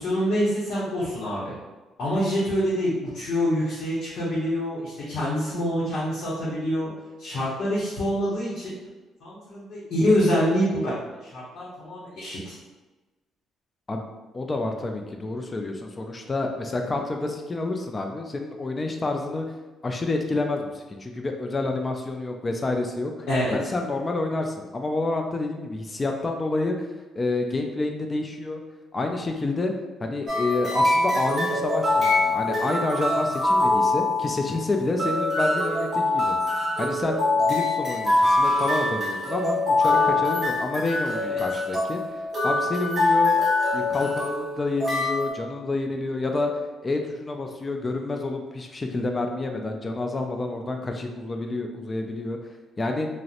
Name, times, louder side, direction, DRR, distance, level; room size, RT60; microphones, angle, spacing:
voice 1, 0.0-1.5 2.0-6.9 7.2-8.8 9.2-10.9 11.2-12.6 23.3-23.5 41.2-41.3, equal, 65° left, -8 dB, 0.8 m, -26 dB
voice 2, 14.3-19.4 19.8-23.3 23.5-26.9 27.2-28.6 28.9-29.7 30.0-36.3 36.8-42.0 42.4-43.4 43.7-46.5 46.8-52.4 52.8-53.1, left 2 dB, 25° left, 3 dB, 0.3 m, -28 dB
sound 1, 30.3-45.3, left 2 dB, 30° right, 0.9 m, -24 dB
2.8 x 2.0 x 2.4 m, 1.2 s
cardioid pair, 95°, 0 cm